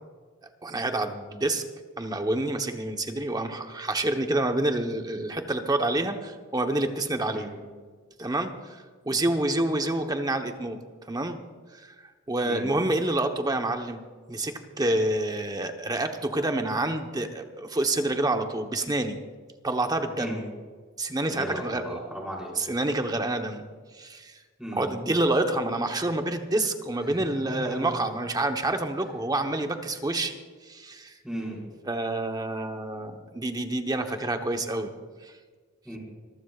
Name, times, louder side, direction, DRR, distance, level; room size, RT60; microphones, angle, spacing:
voice 1, 0.6-1.6 2.0-7.5 8.2-10.8 11.1-11.4 11.8-11.9 12.3-14.0 14.3-19.2 19.6-20.4 21.0-22.0 22.5-23.6 23.9-24.4 24.7-30.4 30.6-31.2 31.8-34.9 35.2-35.3, right 2 dB, 20° right, 5 dB, 1.0 m, -28 dB
voice 2, 7.3-7.6 12.4-12.7 20.2-20.4 21.3-22.5 24.6-24.9 27.1-27.9 31.2-31.6 35.8-36.0, right 1 dB, 5° right, -3 dB, 5.1 m, -36 dB
25.5 x 14.5 x 2.4 m, 1.5 s
head